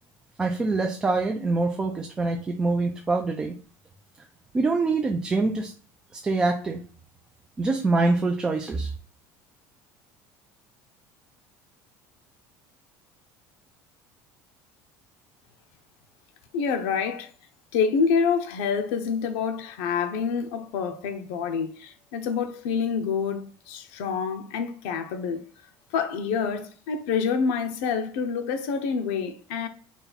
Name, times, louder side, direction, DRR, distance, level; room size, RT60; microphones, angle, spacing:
voice 1, 0.4-3.5 4.5-5.7 6.1-6.8 7.6-8.9, right 3 dB, 10° right, 0.3 m, -25 dB
voice 2, 16.5-17.3 17.7-25.4 25.9-29.7, left 6 dB, 85° left, 0.6 m, -27 dB
4.1 x 2.3 x 3.9 m
cardioid pair, 180°, 7 cm